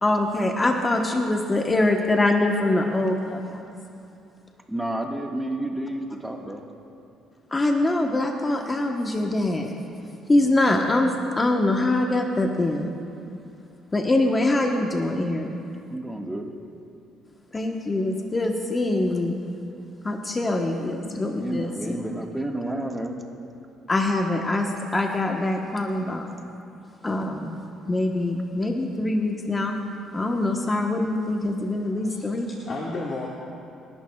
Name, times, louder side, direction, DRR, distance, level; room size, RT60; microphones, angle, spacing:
voice 1, 0.0-3.7 7.5-9.7 10.3-12.9 13.9-15.5 17.5-19.4 20.0-22.0 23.9-26.3 27.0-27.6 27.9-29.7 30.1-32.5, left 2 dB, 20° left, 2 dB, 1.0 m, -24 dB
voice 2, 4.7-6.7 15.9-16.5 21.3-23.3, right 1 dB, 5° right, 1 dB, 1.6 m, -31 dB
voice 3, 31.9-33.3, left 3 dB, 45° left, -3 dB, 1.7 m, -34 dB
27.5 x 11.5 x 2.3 m, 2.6 s
cardioid pair, 90°, 0 cm